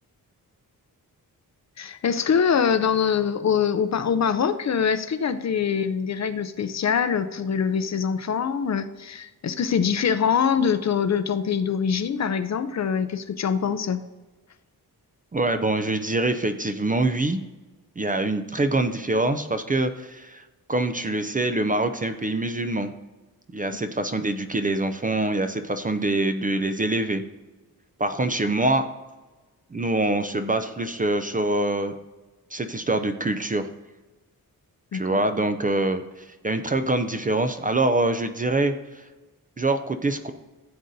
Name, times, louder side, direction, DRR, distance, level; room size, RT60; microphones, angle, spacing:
voice 1, 1.8-14.0 23.7-23.8 34.9-35.2, left 7 dB, 50° left, 11 dB, 0.5 m, -24 dB
voice 2, 15.3-17.4 18.0-20.4 20.7-22.9 23.5-27.2 28.0-28.9 29.7-32.0 32.5-33.7 34.9-39.0 39.6-40.3, right 2 dB, 25° right, 8 dB, 0.4 m, -25 dB
15.0 x 7.8 x 2.7 m, 1.2 s
wide cardioid pair, 165°, 37 cm